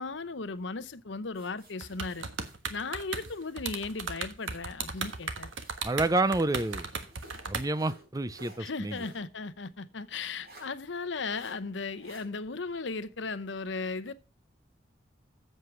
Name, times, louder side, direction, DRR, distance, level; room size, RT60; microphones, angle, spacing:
voice 1, 0.0-2.3 2.7-5.5 8.6-14.1, left 4 dB, 65° left, 0.8 m, -36 dB
sound 1, 1.3-4.0 4.3-5.9 6.5-9.3 9.6-9.7 10.4-10.7 11.3-11.6 12.0-12.3, right 1 dB, 50° right, 5.1 m, -55 dB
sound 2, 1.8-3.3 3.6-7.6, right 5 dB, 80° right, 1.4 m, -36 dB
voice 2, 5.8-6.9 7.5-9.1, right 2 dB, 20° right, 0.5 m, -29 dB
8.2 x 7.6 x 5.9 m
head